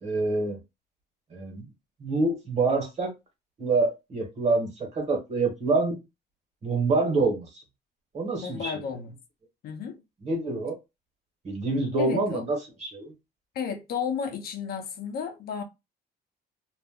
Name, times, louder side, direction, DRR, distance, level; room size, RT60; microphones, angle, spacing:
voice 1, 0.0-0.6 1.3-1.7 2.0-3.1 3.6-6.0 6.6-7.5 8.1-8.8 10.2-10.8 11.4-13.1, right 3 dB, 40° right, 1.2 m, -26 dB
voice 2, 8.4-9.1 9.6-10.0 12.0-12.4 13.5-15.6, left 6 dB, 60° left, 0.7 m, -32 dB
2.5 x 2.1 x 3.6 m
cardioid pair, 140°, 17 cm